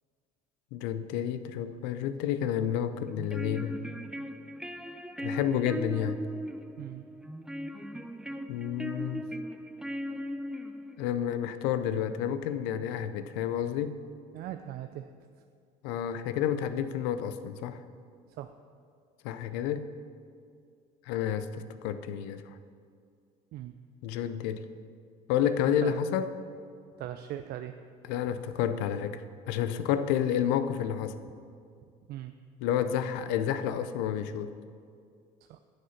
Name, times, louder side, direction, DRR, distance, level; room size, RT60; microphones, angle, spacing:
voice 1, 0.7-3.8 5.2-6.2 8.5-9.3 11.0-14.0 15.8-17.8 19.2-19.9 21.1-22.4 24.0-24.7 25.3-26.3 28.1-31.2 32.6-34.6, left 9 dB, 85° left, 11 dB, 0.6 m, -30 dB
sound 1, 3.1-11.1, equal, 5° right, 0.5 m, -38 dB
voice 2, 14.3-15.1 18.3-18.5 23.5-23.8 25.8-26.0 27.0-27.7 32.1-32.3 35.5-35.6, right 12 dB, 65° right, 8 dB, 0.4 m, -39 dB
9.7 x 6.4 x 5.8 m, 2.3 s
supercardioid pair, 85°, 18 cm